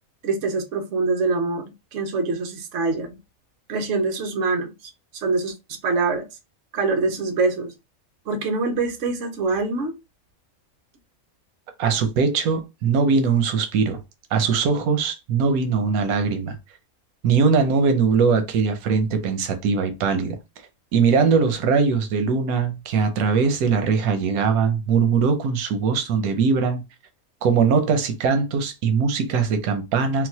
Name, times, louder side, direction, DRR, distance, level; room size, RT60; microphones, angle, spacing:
voice 1, 0.2-3.2 3.7-4.7 5.1-5.5 5.8-6.2 6.7-7.7 8.3-9.9, right 3 dB, 60° right, 1.1 m, -24 dB
voice 2, 11.8-14.0 14.3-16.5 17.2-20.4 20.9-26.8 27.4-30.3, right 5 dB, 90° right, 1.1 m, -21 dB
3.9 x 2.3 x 2.7 m
omnidirectional pair, 1.5 m